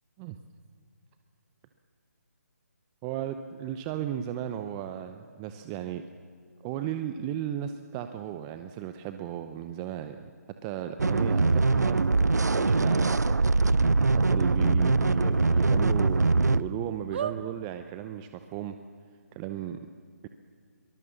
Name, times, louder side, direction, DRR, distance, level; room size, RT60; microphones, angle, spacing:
voice 1, 3.0-6.0 6.6-10.3 10.6-12.1 12.4-13.4 14.1-18.7 19.3-19.8, right 10 dB, 20° right, 8 dB, 0.7 m, -35 dB
sound 1, 11.0-11.1 11.6-11.7 12.7-12.8 13.1-13.2 13.6-13.7 15.4-16.1 16.5-16.6 17.1-17.4 18.2-18.3 18.5-18.6, right 8 dB, 45° right, 1.1 m, -35 dB
sound 2, 11.0-16.6, right 3 dB, 90° right, 0.7 m, -23 dB
23.0 x 19.5 x 7.2 m, 2.1 s
figure-of-eight pair, 150°, 9 cm